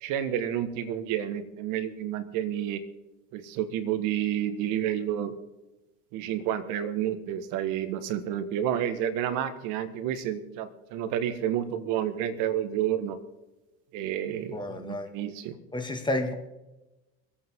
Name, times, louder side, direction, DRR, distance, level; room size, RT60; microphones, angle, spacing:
voice 1, 0.0-2.8 3.3-5.3 6.1-13.2 13.9-15.6, right 10 dB, 65° right, 10 dB, 1.7 m, -30 dB
voice 2, 14.5-15.1 15.7-16.3, left 1 dB, 15° left, 4 dB, 2.0 m, -30 dB
24.5 x 8.8 x 3.8 m, 1.0 s
supercardioid pair, 95°, 34 cm